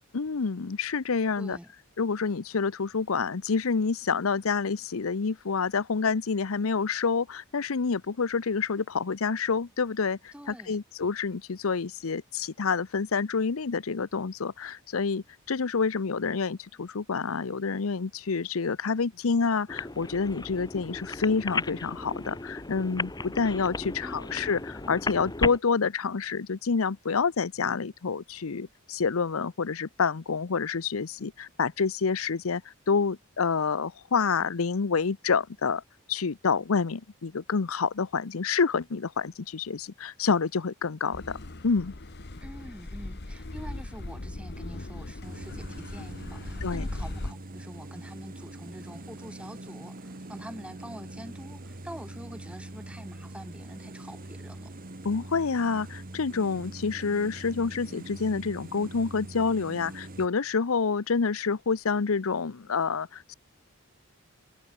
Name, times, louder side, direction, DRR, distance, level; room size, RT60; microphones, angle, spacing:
voice 1, 0.1-1.6 2.0-35.8 36.1-41.4 41.6-41.9 46.6-46.8 55.0-63.3, left 5 dB, 85° left, 0.7 m, -28 dB
voice 2, 1.4-1.7 10.3-10.8 24.0-24.4 42.4-54.7, equal, 5° right, 5.0 m, -45 dB
sound 1, 19.7-25.6, left 3 dB, 20° left, 1.1 m, -35 dB
Car passing by / Accelerating revving vroom, 41.1-47.3, left 2 dB, 55° left, 1.3 m, -38 dB
sound 2, 45.2-60.3, right 1 dB, 45° right, 1.6 m, -43 dB
head